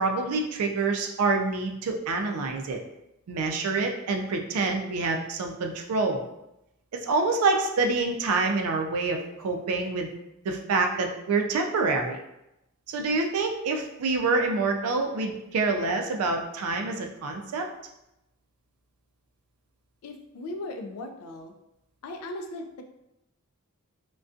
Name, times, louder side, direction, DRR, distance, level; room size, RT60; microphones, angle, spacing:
voice 1, 0.0-2.8 3.3-6.2 6.9-10.1 10.4-12.2 12.9-17.7, right 3 dB, 80° right, 3 dB, 0.4 m, -27 dB
voice 2, 20.0-21.5 22.0-22.8, left 2 dB, 75° left, 5 dB, 0.3 m, -37 dB
2.5 x 2.2 x 2.3 m, 0.87 s
head